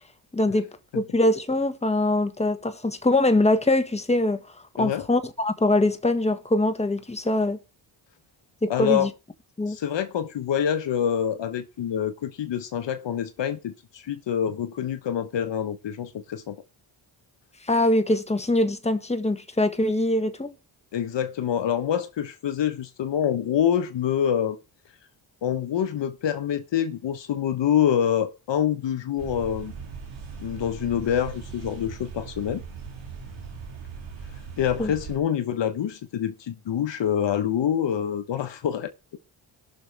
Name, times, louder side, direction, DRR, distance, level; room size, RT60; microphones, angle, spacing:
voice 1, 0.3-0.7 0.9-4.4 4.8-7.6 8.6-9.1 9.6-9.8 17.6-20.5 34.8-34.9, left 1 dB, 15° left, 1.5 m, -23 dB
voice 2, 8.7-9.1 9.7-16.6 20.9-24.6 25.4-29.7 30.4-32.6 34.6-38.9, left 9 dB, 65° left, 1.0 m, -26 dB
sound 1, 29.2-35.2, right 5 dB, 85° right, 2.8 m, -39 dB
18.5 x 6.3 x 3.3 m
cardioid pair, 65°, 46 cm